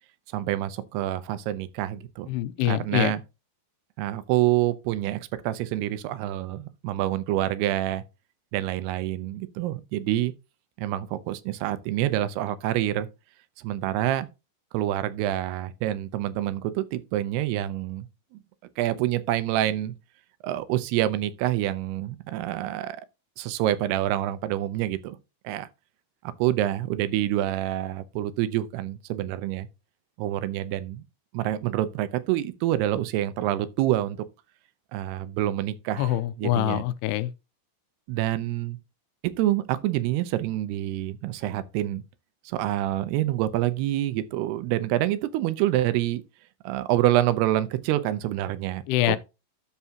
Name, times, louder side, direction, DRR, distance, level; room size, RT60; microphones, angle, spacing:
voice 1, 0.3-2.3 2.7-3.2 4.0-8.0 8.5-10.3 10.8-13.1 13.6-14.3 14.7-18.1 18.8-19.9 20.4-23.1 23.4-25.2 25.4-25.7 26.4-29.7 30.2-31.0 31.3-34.2 34.9-36.8 38.1-38.8 39.4-42.0 42.5-46.2 46.6-48.8, right 14 dB, 85° right, 2.7 m, -27 dB
voice 2, 2.3-3.1 36.0-37.3 48.9-49.2, left 14 dB, 90° left, 2.7 m, -25 dB
13.0 x 4.7 x 2.8 m
omnidirectional pair, 4.6 m